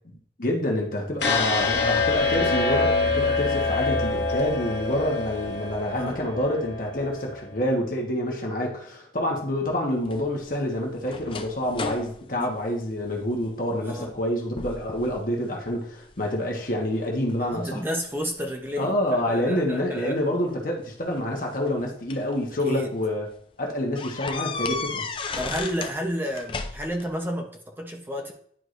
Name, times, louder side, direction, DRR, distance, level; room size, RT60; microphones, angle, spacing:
voice 1, 0.4-17.8 18.8-23.3 23.6-25.1, left 1 dB, 50° left, 0 dB, 1.2 m, -27 dB
sound 1, 1.2-7.3, left 3 dB, 90° left, 1.6 m, -25 dB
voice 2, 1.2-1.5 5.9-6.1 12.4-12.5 13.9-14.1 17.5-20.2 22.6-22.9 25.3-28.3, equal, 10° right, 1 dB, 0.8 m, -31 dB
sound 2, 10.1-13.5 13.9-14.3 14.6-15.2 15.7-16.4 17.0-18.4 19.6-19.7 20.9-22.3 22.9-23.0 23.3-23.4 24.0-26.0 26.3-27.1, left 4 dB, 30° left, 0.4 m, -35 dB
10.0 x 4.8 x 2.6 m, 0.63 s
head